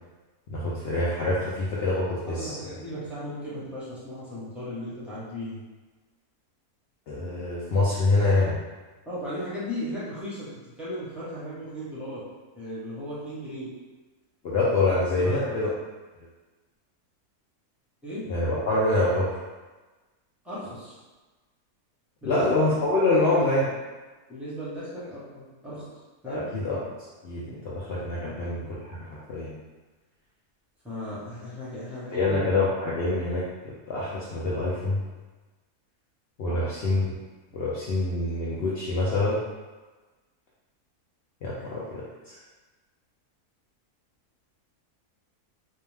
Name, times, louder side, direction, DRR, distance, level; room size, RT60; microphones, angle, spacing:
voice 1, 0.5-2.6 7.1-8.6 14.4-15.7 18.3-19.3 22.2-23.7 26.3-26.8 27.2-29.5 32.1-35.0 36.4-37.1 37.5-39.4 41.4-42.0, left 2 dB, 90° left, -7 dB, 0.5 m, -25 dB
voice 2, 2.3-5.6 9.1-12.2 12.5-13.7 14.9-15.5 18.0-18.2 20.4-21.0 22.2-22.5 23.1-23.3 24.3-25.9 26.2-26.4 28.2-28.4 30.8-32.4 36.4-36.7 41.6-41.7, equal, ahead, -11 dB, 0.4 m, -36 dB
2.6 x 2.1 x 3.2 m, 1.3 s
omnidirectional pair, 1.6 m